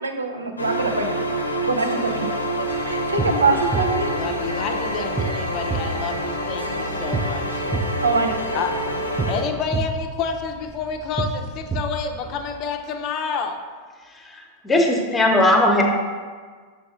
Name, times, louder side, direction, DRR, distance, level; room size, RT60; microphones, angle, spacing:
voice 1, 0.0-1.2 1.7-2.3 2.6-4.1 8.0-8.4, right 3 dB, 75° right, 5 dB, 0.5 m, -23 dB
sound 1, 0.6-9.4, equal, 80° left, 0.6 m, -27 dB
sound 2, 2.7-12.6, right 3 dB, 10° right, 0.4 m, -30 dB
voice 2, 4.1-7.6 8.5-8.7 9.3-13.6, left 5 dB, 40° left, 4 dB, 0.5 m, -29 dB
voice 3, 14.0-15.8, left 1 dB, 15° left, 2 dB, 0.9 m, -19 dB
6.0 x 4.6 x 3.6 m, 1.6 s
figure-of-eight pair, 90°, 0 cm